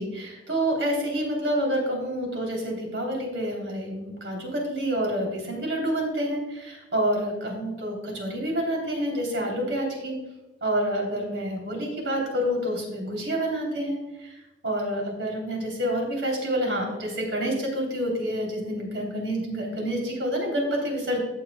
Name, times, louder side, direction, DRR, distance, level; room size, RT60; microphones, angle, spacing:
voice 1, 0.0-10.2 10.6-14.4 14.6-21.2, equal, 85° right, 0 dB, 3.1 m, -28 dB
15.5 x 6.8 x 2.2 m, 1.1 s
head